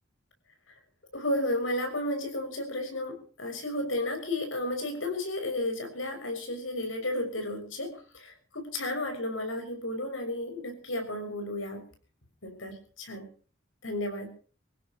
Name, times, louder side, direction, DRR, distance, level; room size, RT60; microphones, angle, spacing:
voice 1, 1.1-11.9 12.4-13.3 13.8-14.3, left 1 dB, 90° left, 5 dB, 6.4 m, -33 dB
26.0 x 16.0 x 3.0 m, 0.40 s
head